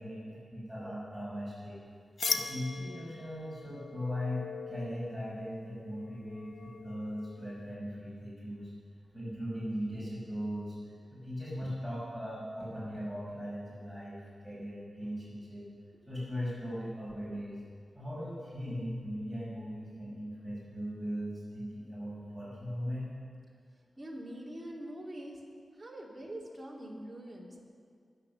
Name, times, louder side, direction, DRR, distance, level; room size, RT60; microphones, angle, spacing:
voice 1, 0.0-1.8 2.2-8.7 9.1-10.7 11.1-15.7 16.1-17.6 17.9-23.1, equal, ahead, -8 dB, 5.5 m, -39 dB
sound 1, 2.2-7.7, left 4 dB, 65° left, 1.0 m, -40 dB
voice 2, 24.0-25.4 25.7-27.6, right 1 dB, 15° right, -4 dB, 2.6 m, -44 dB
23.0 x 8.6 x 6.9 m, 2.2 s
wide cardioid pair, 145°, 0 cm